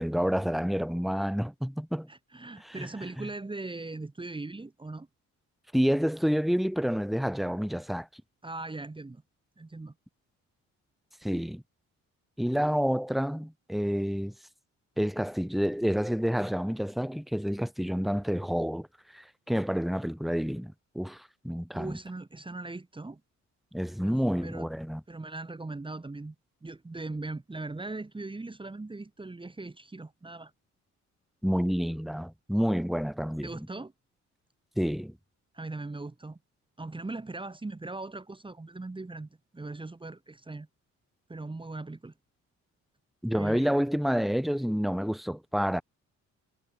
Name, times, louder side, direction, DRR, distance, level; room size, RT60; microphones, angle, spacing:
voice 1, 0.0-2.1 2.6-2.9 3.2-3.3 5.7-8.1 11.2-11.6 12.4-14.3 15.0-18.9 19.1-22.0 23.7-25.0 31.4-33.7 34.8-35.2 43.2-45.8, equal, ahead, 2.8 m, -29 dB
voice 2, 2.1-5.1 8.4-9.2 9.6-9.9 21.7-23.2 24.0-24.7 25.1-26.4 26.6-30.5 33.4-33.9 35.5-36.4 36.8-40.7 41.3-42.1 43.3-43.7, right 2 dB, 15° right, 2.4 m, -39 dB
cardioid pair, 90°, 30 cm